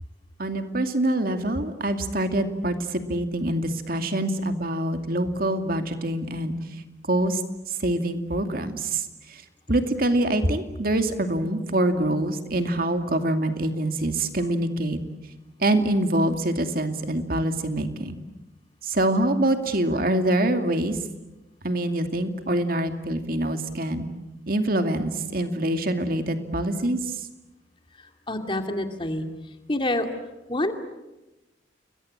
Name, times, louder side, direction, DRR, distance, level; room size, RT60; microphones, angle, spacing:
voice 1, 0.4-6.6 7.1-7.4 7.7-9.4 9.7-15.0 15.6-18.2 18.8-21.0 21.6-24.1 24.5-27.2, right 1 dB, 55° right, 7 dB, 2.4 m, -25 dB
voice 2, 28.3-29.2 29.7-30.1 30.5-30.7, left 1 dB, 30° left, 6 dB, 2.5 m, -26 dB
29.5 x 22.5 x 8.7 m, 1.0 s
head